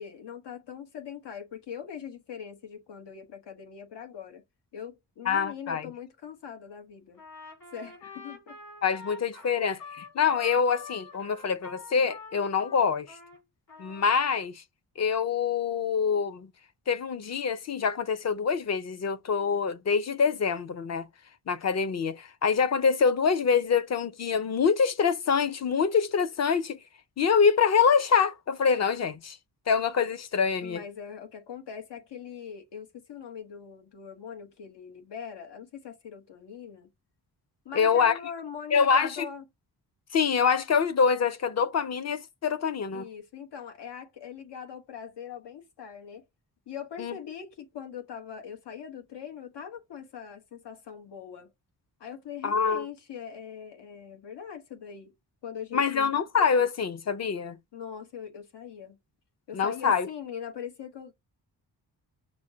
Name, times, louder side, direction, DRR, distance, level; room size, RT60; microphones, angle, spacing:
voice 1, 0.0-4.4 4.7-7.2 7.7-8.6 30.6-36.9 37.6-39.4 42.9-46.2 46.7-51.5 52.0-55.1 55.4-56.2 57.7-59.0 59.5-61.1, left 7 dB, 85° left, 1.2 m, -41 dB
voice 2, 5.3-5.9 8.8-13.2 13.8-14.6 15.0-16.5 16.9-21.1 21.5-26.8 27.2-29.4 29.7-30.8 37.7-38.1 38.7-39.3 40.1-43.1 47.0-47.1 52.4-52.8 55.7-57.6 59.5-60.1, left 6 dB, 40° left, 0.5 m, -25 dB
Trumpet, 7.1-13.4 13.7-14.4, left 4 dB, 60° left, 3.1 m, -46 dB
6.2 x 2.1 x 2.7 m
wide cardioid pair, 140°, 40 cm